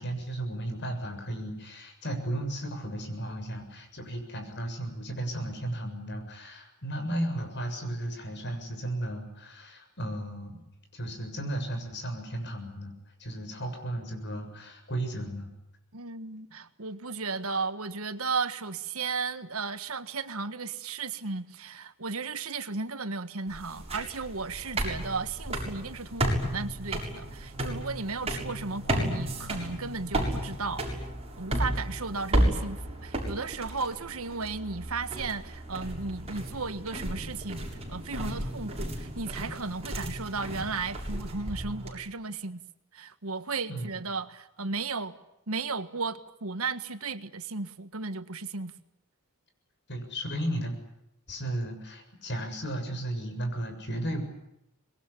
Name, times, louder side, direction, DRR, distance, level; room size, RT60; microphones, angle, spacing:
voice 1, 0.0-10.6 10.9-12.9 13.2-15.5 43.7-44.0 49.9-50.8 51.3-54.2, right 1 dB, 55° left, 7.2 m, -34 dB
voice 2, 15.9-31.0 31.4-42.6 42.9-45.1 45.5-48.7, right 4 dB, 75° right, 1.6 m, -35 dB
sound 1, 23.5-41.9, right 1 dB, 30° right, 7.2 m, -33 dB
26.0 x 21.5 x 9.9 m
head